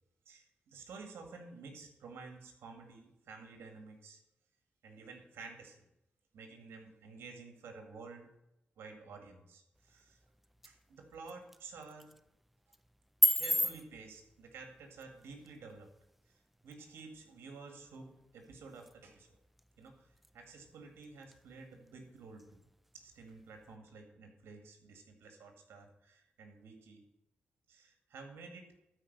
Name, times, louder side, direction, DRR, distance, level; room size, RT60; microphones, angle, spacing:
voice 1, 0.3-4.2 4.8-5.8 6.3-8.3 8.8-10.2 10.6-12.1 13.3-15.9 16.3-19.3 19.8-22.6 22.9-27.0 27.7-28.7, right 4 dB, 90° right, 4 dB, 2.0 m, -51 dB
sound 1, 9.7-23.8, equal, 5° right, 0.5 m, -40 dB
12.5 x 5.0 x 6.7 m, 0.87 s
cardioid pair, 60°, 4 cm